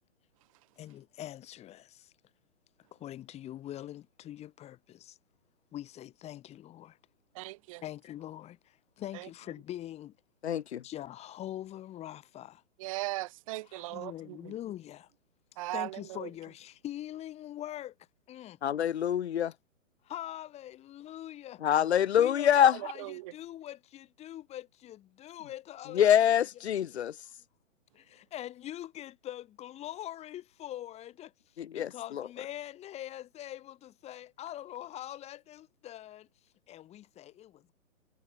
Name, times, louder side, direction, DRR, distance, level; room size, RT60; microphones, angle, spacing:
voice 1, 0.8-2.1 2.9-5.2 5.7-7.0 7.8-10.2 10.8-12.6 13.6-15.1 15.7-17.9 18.3-18.6 20.0-21.6 22.1-26.6 27.9-31.3 31.7-36.3 36.7-37.7, left 13 dB, 15° left, 5.2 m, -43 dB
voice 2, 7.4-7.8 12.8-14.1 15.6-15.9 22.6-22.7 23.0-23.1, right 20 dB, 25° right, 1.2 m, -36 dB
voice 3, 10.4-10.8 18.6-19.5 21.6-22.7 25.9-27.1 31.6-31.9, left 10 dB, 55° left, 1.7 m, -25 dB
hypercardioid pair, 155°, 40 cm